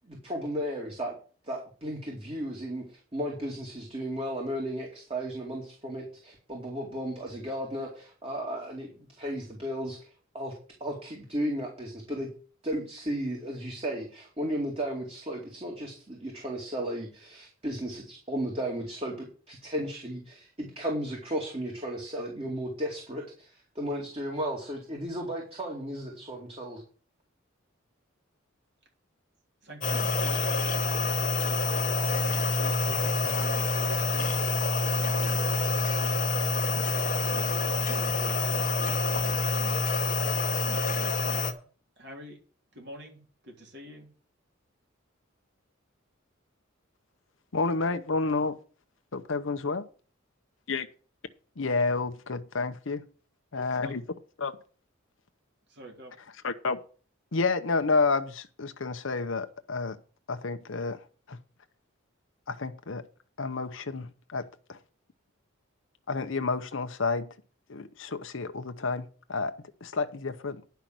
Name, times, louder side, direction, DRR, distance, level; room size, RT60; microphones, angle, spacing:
voice 1, 0.1-1.2 1.4-8.9 9.2-10.1 10.3-10.5 10.8-12.3 12.6-26.8, equal, 30° right, 2.4 m, -34 dB
voice 2, 29.6-31.1 31.4-31.8 32.1-34.3 34.8-35.5 36.4-39.8 40.4-41.4 42.0-42.4 42.7-44.1 53.5-54.0 55.7-56.2, right 1 dB, 55° right, 3.5 m, -47 dB
sound 1, 29.8-41.5, left 3 dB, 40° left, 1.1 m, -27 dB
voice 3, 47.5-48.6 49.1-49.8 50.7-50.9 51.6-53.0 53.5-54.0 54.4-54.5 56.4-56.8 57.3-60.0 60.3-61.4 62.5-63.1 63.4-64.8 66.1-67.4 67.7-69.6 69.8-70.6, left 4 dB, 65° left, 0.8 m, -30 dB
10.5 x 5.8 x 7.5 m
head